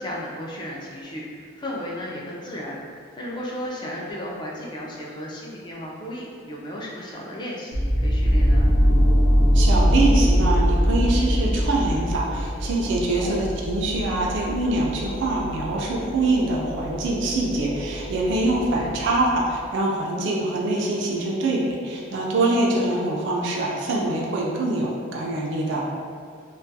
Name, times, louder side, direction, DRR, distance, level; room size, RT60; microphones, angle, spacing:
voice 1, 0.0-2.8 3.2-8.7 13.2-13.5 18.7-18.9 22.7-23.0, equal, 20° left, -4 dB, 0.3 m, -34 dB
sound 1, 7.7-19.7, equal, 85° left, 0.5 m, -23 dB
voice 2, 9.5-25.8, right 2 dB, 60° right, -3 dB, 0.3 m, -24 dB
2.3 x 2.2 x 2.6 m, 2.2 s
head